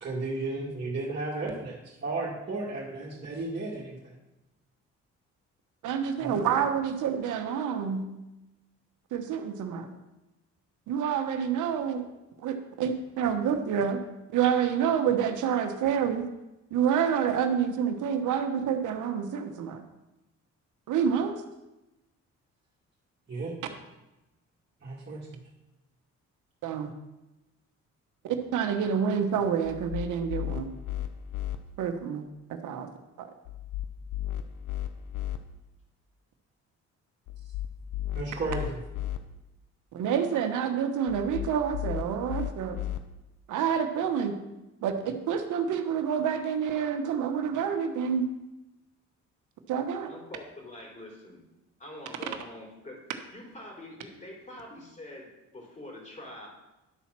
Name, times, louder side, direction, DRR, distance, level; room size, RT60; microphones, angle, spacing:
voice 1, 0.0-4.1 6.2-6.4 23.3-23.5 24.8-25.4 38.1-38.8, right 3 dB, 35° right, -7 dB, 2.1 m, -34 dB
voice 2, 5.8-8.0 9.1-9.9 10.9-12.0 12.4-14.0 14.3-16.3 16.7-19.8 20.9-21.4 26.6-26.9 28.2-30.7 31.8-32.9 33.2-33.3 39.9-42.8 43.5-44.4 44.8-48.3 49.7-50.1, right 7 dB, 80° right, 6 dB, 1.1 m, -28 dB
sound 1, 29.6-31.6 33.5-35.4 37.3-39.2 41.1-43.0, left 11 dB, 80° left, 0.8 m, -35 dB
voice 3, 50.1-51.4 51.8-53.1 53.3-56.5, left 1 dB, 25° left, -2 dB, 3.3 m, -45 dB
11.0 x 4.2 x 6.0 m, 0.98 s
cardioid pair, 90°, 30 cm